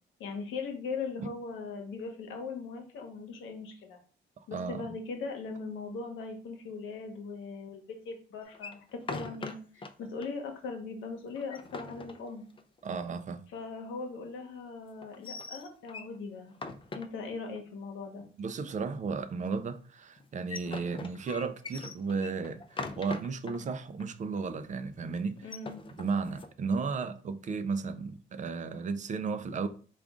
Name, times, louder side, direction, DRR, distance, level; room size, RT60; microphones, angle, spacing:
voice 1, 0.2-4.0 4.5-12.4 13.5-16.5 16.9-18.2 25.4-25.8, left 4 dB, 85° left, 0.9 m, -39 dB
voice 2, 4.4-4.9 12.8-13.5 18.4-25.5 26.0-29.7, right 5 dB, 40° right, 0.4 m, -34 dB
sound 1, 8.5-9.9 10.2-10.3 10.7-10.8 11.3-12.8 15.0-16.2 16.5-17.6 20.2-23.6 24.0-24.1 24.4-24.7 25.3-26.5, left 3 dB, 25° left, 0.4 m, -41 dB
3.7 x 2.4 x 3.5 m
cardioid pair, 90°, 20 cm